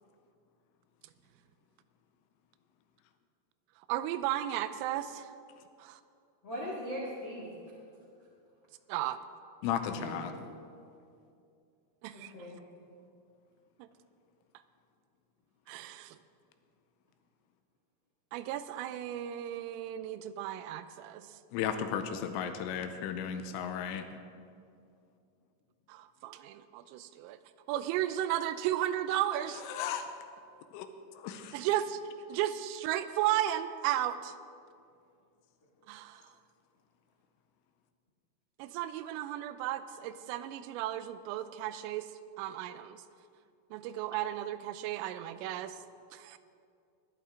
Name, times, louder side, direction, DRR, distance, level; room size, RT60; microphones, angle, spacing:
voice 1, 3.9-5.3 5.8-6.0 8.9-9.2 12.0-12.3 13.8-13.9 15.7-16.2 18.3-21.4 25.9-27.4 27.7-29.6 31.5-32.0 32.3-34.3 35.9-36.3 38.6-42.1 42.4-43.0 43.7-45.8 46.1-46.4, right 12 dB, 85° right, 12 dB, 3.1 m, -34 dB
voice 2, 6.4-7.5 9.9-10.2 12.1-12.6, equal, 60° left, -5 dB, 1.2 m, -39 dB
voice 3, 9.6-10.3 21.5-24.0 29.7-30.0 30.7-30.9 31.2-31.6, left 8 dB, 85° left, 8 dB, 3.1 m, -34 dB
20.5 x 11.5 x 3.7 m, 2.5 s
omnidirectional pair, 5.9 m